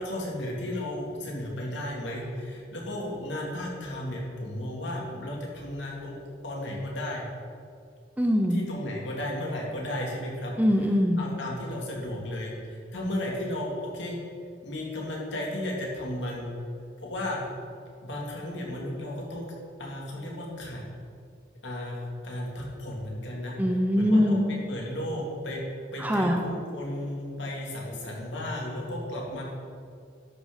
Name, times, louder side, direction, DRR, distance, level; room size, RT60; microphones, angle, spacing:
voice 1, 0.0-6.2 6.4-7.3 8.5-10.5 11.2-14.2 14.6-16.5 17.0-17.4 18.0-19.5 19.8-20.8 21.6-23.6 23.9-25.6 25.9-29.4, left 1 dB, 75° left, -2 dB, 2.3 m, -34 dB
voice 2, 8.2-8.6 10.6-11.2 23.6-24.4 26.0-26.4, equal, 10° right, 3 dB, 0.6 m, -22 dB
12.0 x 6.1 x 5.1 m, 2.3 s
head